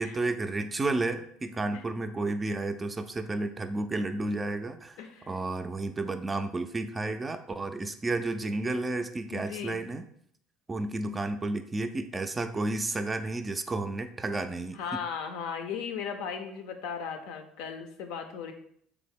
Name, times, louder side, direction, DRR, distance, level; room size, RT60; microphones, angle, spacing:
voice 1, 0.0-5.0 5.3-10.1 10.7-14.8, right 2 dB, 25° right, 8 dB, 0.3 m, -31 dB
voice 2, 5.0-5.3 9.3-9.9 14.7-18.5, left 6 dB, 75° left, 5 dB, 0.5 m, -37 dB
3.4 x 2.0 x 3.5 m, 0.65 s
hypercardioid pair, 80°, 0 cm